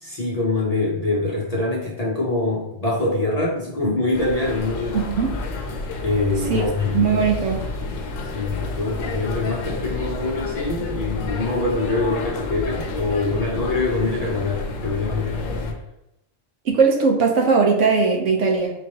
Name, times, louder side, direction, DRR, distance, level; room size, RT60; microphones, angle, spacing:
voice 1, 0.0-5.0 6.0-7.2 8.3-15.8, left 2 dB, 40° left, -5 dB, 0.6 m, -24 dB
sound 1, 4.1-15.7, left 3 dB, 80° left, 1.0 m, -30 dB
voice 2, 4.9-5.3 6.5-6.6 6.9-7.6 16.6-18.7, right 5 dB, 75° right, 1 dB, 1.0 m, -19 dB
4.5 x 3.1 x 2.7 m, 0.85 s
omnidirectional pair, 1.3 m